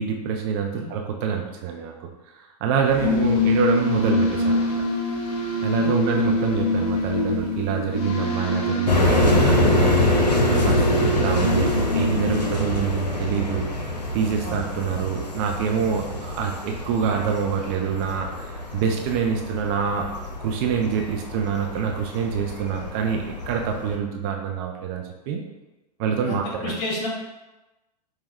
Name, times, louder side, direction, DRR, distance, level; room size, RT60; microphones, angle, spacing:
voice 1, 0.0-1.9 2.6-4.8 5.6-10.1 10.5-13.7 14.1-20.1 20.4-25.4 26.0-26.7, right 7 dB, 35° right, 2 dB, 0.4 m, -26 dB
sound 1, 2.8-13.2, left 2 dB, 30° left, 1.2 m, -24 dB
sound 2, 8.9-24.0, left 1 dB, 80° left, 0.7 m, -25 dB
voice 2, 26.2-27.1, left 2 dB, 45° left, -3 dB, 1.4 m, -32 dB
5.1 x 2.2 x 3.2 m, 1.0 s
figure-of-eight pair, 95°, 21 cm